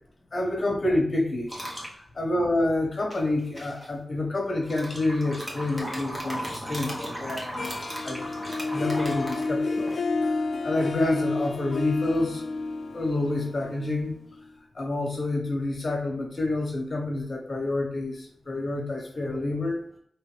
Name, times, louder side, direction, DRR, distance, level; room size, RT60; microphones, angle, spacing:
voice 1, 0.3-1.5 2.2-7.8 8.0-8.3 8.7-9.9 10.2-12.4 12.9-14.1 14.7-19.8, left 2 dB, 40° left, 0 dB, 1.3 m, -28 dB
sound 1, 1.5-1.9 3.1-3.9 4.6-10.0, equal, 15° right, 1.2 m, -36 dB
Harp, 7.6-14.5, left 3 dB, 55° left, 0.5 m, -30 dB
4.9 x 3.2 x 3.3 m, 0.64 s
wide cardioid pair, 155°, 0 cm